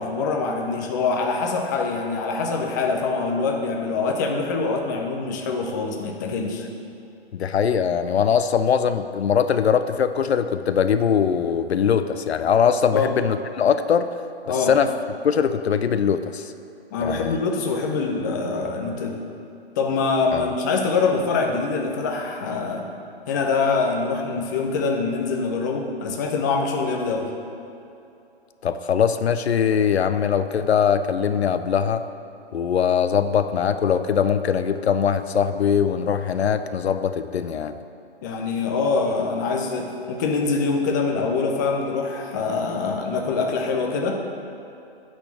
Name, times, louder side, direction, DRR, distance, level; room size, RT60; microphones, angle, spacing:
voice 1, 0.0-6.6 12.9-13.1 14.5-14.7 16.9-19.2 19.8-22.9 23.3-27.3 38.2-44.2, left 4 dB, 20° left, 2 dB, 0.5 m, -24 dB
voice 2, 7.3-14.1 14.5-14.9 15.2-16.5 17.0-17.4 20.3-20.5 28.6-32.0 32.5-37.8, left 7 dB, 75° left, 10 dB, 0.6 m, -21 dB
8.9 x 4.3 x 7.1 m, 2.7 s
hypercardioid pair, 145°, 32 cm